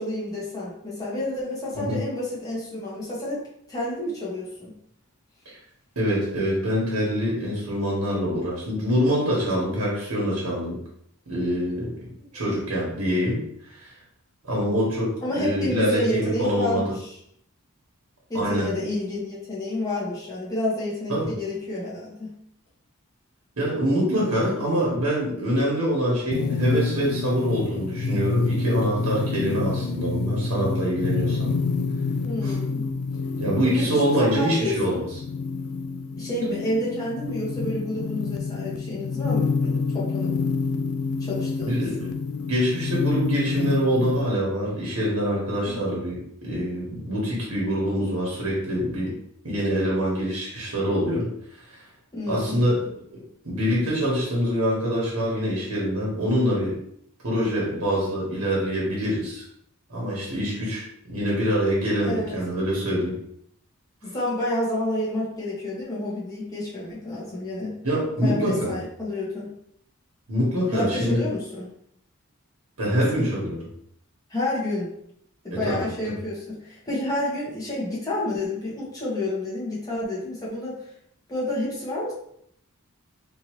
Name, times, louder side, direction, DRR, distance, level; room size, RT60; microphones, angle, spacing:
voice 1, 0.0-3.4 3.7-4.7 12.4-12.6 15.2-17.2 18.3-22.3 32.2-32.9 33.7-35.0 36.2-40.3 41.2-41.8 45.6-45.9 52.1-52.6 62.0-62.4 64.0-67.7 68.2-69.5 70.7-71.7 72.9-73.3 74.3-74.9 75.4-80.8 81.3-82.1, left 1 dB, 15° left, -7 dB, 1.3 m, -29 dB
voice 2, 5.9-10.8 11.3-11.9 12.3-13.4 13.7-13.9 14.4-16.8 18.3-18.7 21.1-21.3 23.6-31.5 32.4-32.5 33.4-35.0 41.6-42.1 42.5-49.1 49.4-51.3 51.5-51.8 52.3-53.2 53.4-56.7 57.2-59.4 59.9-63.1 67.8-68.7 70.3-71.2 72.8-73.7 75.5-76.2, equal, 75° right, -5 dB, 1.3 m, -25 dB
sound 1, 26.3-44.3, left 4 dB, 70° left, 0.3 m, -28 dB
3.6 x 2.7 x 3.0 m, 0.71 s
head